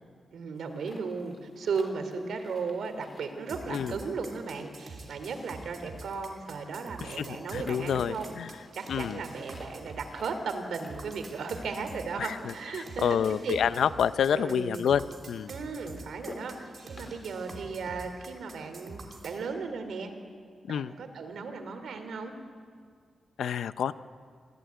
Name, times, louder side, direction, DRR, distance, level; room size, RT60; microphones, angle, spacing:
voice 1, 0.3-8.4 8.7-13.6 14.3-14.8 15.5-20.1 20.7-22.3, right 4 dB, 80° right, 7 dB, 2.8 m, -36 dB
sound 1, 0.5-18.1, left 2 dB, 30° left, 3.3 m, -54 dB
sound 2, 3.5-19.4, right 3 dB, 45° right, 3.2 m, -46 dB
voice 2, 7.5-8.5 8.9-9.2 12.2-12.5 13.0-15.5 20.7-20.9 23.4-23.9, left 8 dB, 90° left, 14 dB, 0.6 m, -28 dB
26.5 x 15.0 x 9.4 m, 2.1 s
wide cardioid pair, 155°, 0 cm